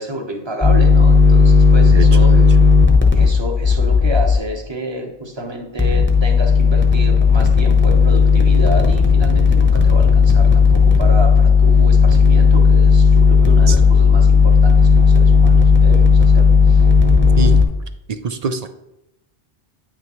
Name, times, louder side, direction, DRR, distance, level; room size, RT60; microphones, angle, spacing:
voice 1, 0.0-2.3 3.1-16.8, right 1 dB, 25° right, 3 dB, 1.0 m, -29 dB
sound 1, 0.6-4.4 5.8-17.6, left 5 dB, 10° left, 0.8 m, -12 dB
voice 2, 1.9-2.5 13.7-13.8 17.4-17.6 18.1-18.7, right 5 dB, 55° right, 9 dB, 0.5 m, -24 dB
9.2 x 6.0 x 3.0 m, 0.89 s
omnidirectional pair, 1.0 m